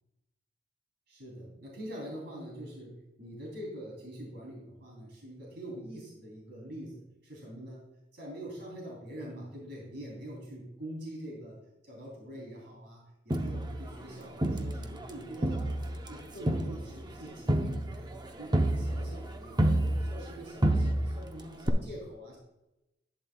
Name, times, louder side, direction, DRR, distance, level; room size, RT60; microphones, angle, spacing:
voice 1, 1.1-11.6 11.8-15.8 16.1-17.6 17.9-22.4, right 1 dB, 65° right, -2 dB, 3.0 m, -44 dB
Crowd, 13.3-15.1 15.4-20.3 20.6-21.3 21.7-21.8, right 1 dB, 25° right, 0.7 m, -29 dB
11.5 x 9.2 x 2.3 m, 0.93 s
head